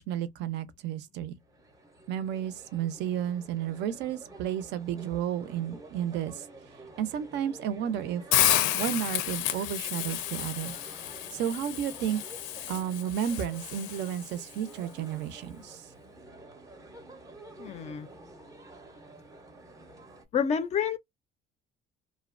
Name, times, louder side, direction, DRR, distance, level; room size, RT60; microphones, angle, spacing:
voice 1, 0.0-1.4 2.1-6.5 7.0-8.2 8.7-10.8 11.3-12.2 12.7-15.9, right 9 dB, 65° right, 0.5 m, -32 dB
sound 1, 1.4-20.2, right 2 dB, 15° right, 0.5 m, -50 dB
Hiss, 8.3-14.4, left 13 dB, 90° left, 0.5 m, -30 dB
voice 2, 17.6-18.1 20.3-21.0, left 7 dB, 35° left, 0.4 m, -28 dB
2.6 x 2.1 x 2.4 m
cardioid pair, 160°, 19 cm